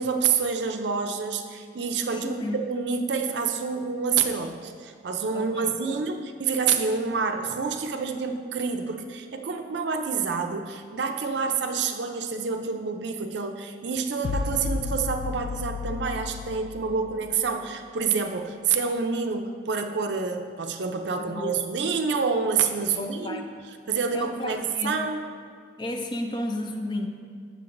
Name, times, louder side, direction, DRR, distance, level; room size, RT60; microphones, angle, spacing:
voice 1, 0.0-23.4 23.9-25.2, right 5 dB, 75° right, 6 dB, 0.5 m, -28 dB
voice 2, 2.1-2.6 5.3-6.0 21.2-21.6 22.9-23.5 24.1-25.1 25.8-27.1, left 1 dB, 25° left, 4 dB, 0.4 m, -33 dB
sound 1, 14.2-17.7, left 5 dB, 85° left, 0.4 m, -33 dB
7.7 x 6.5 x 2.5 m, 2.1 s
head